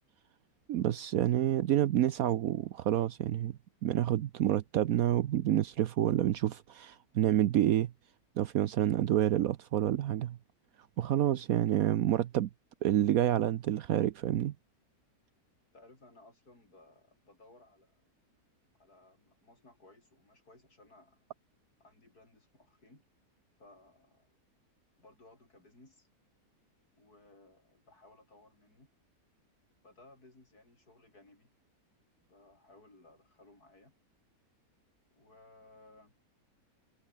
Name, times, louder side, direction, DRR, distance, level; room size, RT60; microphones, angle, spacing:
voice 1, 0.7-3.5 3.8-7.9 8.4-10.4 11.0-12.5 12.8-14.5, right 12 dB, 70° right, 1.1 m, -28 dB
voice 2, 15.7-18.0 18.7-21.3 21.8-23.0 23.6-24.4 25.0-26.1 26.9-28.9 29.8-31.5 32.2-33.9 35.1-36.1, left 2 dB, 80° left, 7.6 m, -60 dB
omnidirectional pair, 1.6 m